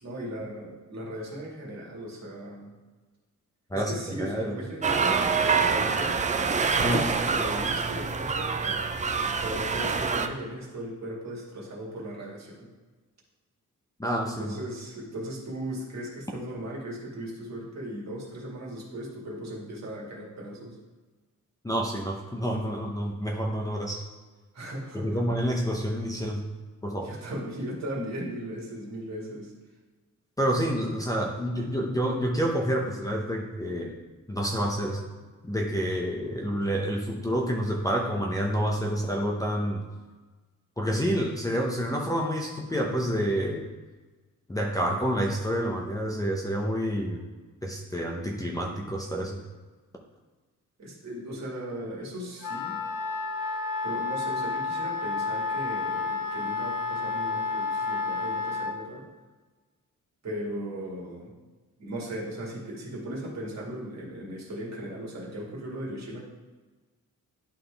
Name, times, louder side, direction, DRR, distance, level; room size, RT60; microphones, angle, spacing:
voice 1, 0.0-2.7 3.7-6.2 6.8-8.8 9.4-12.7 14.4-20.8 24.5-25.2 27.0-29.5 50.8-52.8 53.8-59.1 60.2-61.3 61.8-66.2, equal, 55° right, -3 dB, 2.0 m, -37 dB
voice 2, 3.7-4.6 6.8-7.0 14.0-14.6 21.6-24.0 24.9-26.4 26.8-27.1 30.4-33.9 34.3-35.1 35.4-39.8 40.8-43.7 44.5-47.2 47.6-49.4, equal, 10° left, -1 dB, 0.7 m, -28 dB
sound 1, 4.8-10.3, right 5 dB, 25° right, 0.4 m, -26 dB
Wind instrument woodwind instrument, 52.4-58.8, left 4 dB, 75° left, 0.7 m, -30 dB
11.0 x 3.8 x 3.4 m, 1.3 s
wide cardioid pair, 135°, 33 cm